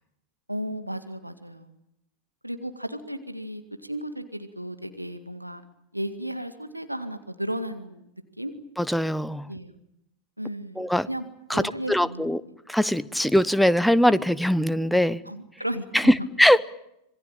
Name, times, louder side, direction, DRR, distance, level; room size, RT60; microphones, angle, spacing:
voice 1, 0.5-1.7 2.4-5.6 5.9-8.1 8.4-8.5 9.5-9.8 10.4-11.2 11.5-12.3 15.3-16.1, equal, 90° right, 9 dB, 2.1 m, -34 dB
voice 2, 8.8-9.5 10.8-11.1 11.5-12.4 12.7-15.2 15.9-16.6, equal, ahead, 16 dB, 1.0 m, -21 dB
26.5 x 21.0 x 8.9 m, 0.79 s
figure-of-eight pair, 90°, 0 cm